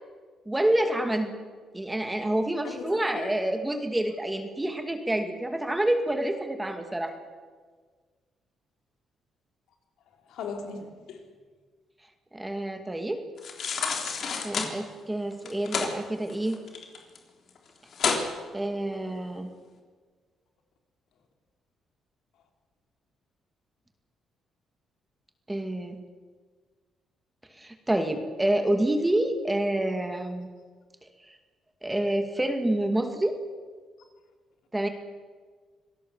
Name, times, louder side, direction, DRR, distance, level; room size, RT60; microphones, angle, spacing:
voice 1, 0.5-1.3 1.7-7.1 12.3-13.2 14.4-16.6 18.5-19.5 25.5-26.0 27.6-30.5 31.3-31.4 31.8-33.4 34.7-34.9, right 1 dB, 10° right, 6 dB, 2.2 m, -28 dB
voice 2, 2.6-3.3 10.3-11.3, left 5 dB, 85° left, 3 dB, 3.9 m, -38 dB
sound 1, 13.4-14.7 15.4-15.9 16.3-17.2 17.5-17.6 17.9-18.3 18.7-18.8, left 5 dB, 60° left, 3.5 m, -29 dB
26.0 x 18.0 x 7.2 m, 1.5 s
cardioid pair, 90°, 0 cm